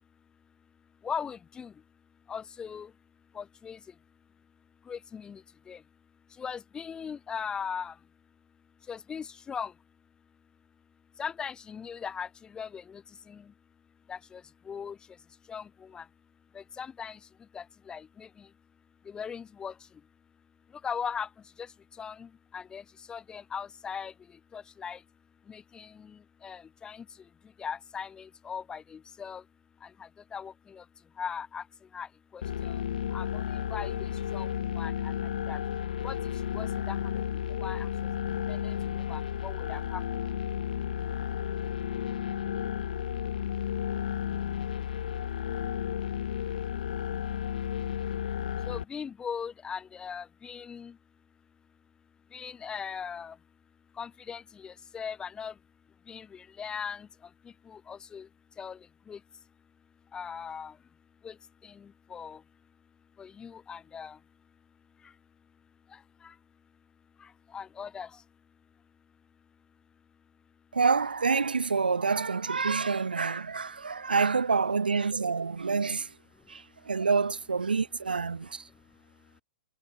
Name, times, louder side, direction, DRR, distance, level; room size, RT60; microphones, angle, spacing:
voice 1, 1.0-1.7 2.3-2.9 3.3-3.8 4.9-5.4 5.7-5.8 6.4-7.9 8.9-9.7 11.2-13.0 13.3-13.4 14.1-14.4 14.7-15.0 15.5-16.0 16.5-17.2 17.5-18.3 19.1-19.7 20.8-21.3 21.6-21.7 22.0-22.8 23.1-24.1 24.5-25.0 25.5-27.0 27.6-29.4 30.3-30.8 31.2-31.6 31.9-32.1 32.3-32.8 33.1-34.0 34.3-34.5 34.8-35.2 35.5-35.6 36.0-36.2 36.5-37.0 37.5-37.9 38.5-40.0 48.7-50.9 52.3-53.4 54.0-55.5 56.1-57.1 57.7-58.3 58.6-58.8 59.1-59.2 60.1-60.7 61.2-61.3 61.6-62.4 63.2-64.2 66.2-66.3 67.5-68.1, left 7 dB, 15° left, 0.5 m, -39 dB
sound 1, 32.4-48.8, left 10 dB, 65° left, 0.5 m, -33 dB
voice 2, 70.7-76.1 76.5-78.7, right 5 dB, 85° right, 0.8 m, -27 dB
hypercardioid pair, 110°, 5 cm